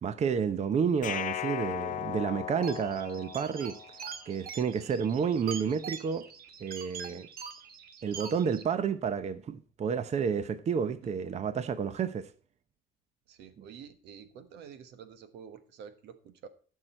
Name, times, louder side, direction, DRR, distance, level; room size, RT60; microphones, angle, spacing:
voice 1, 0.0-3.8 4.3-6.3 6.6-7.3 8.0-12.3, right 6 dB, 40° right, 0.8 m, -30 dB
sound 1, 1.0-4.1, left 12 dB, 50° left, 0.6 m, -37 dB
sound 2, 2.6-8.6, right 6 dB, 65° right, 1.4 m, -44 dB
voice 2, 13.3-16.5, right 7 dB, 85° right, 1.3 m, -49 dB
15.0 x 6.4 x 4.4 m
cardioid pair, 110°, 17 cm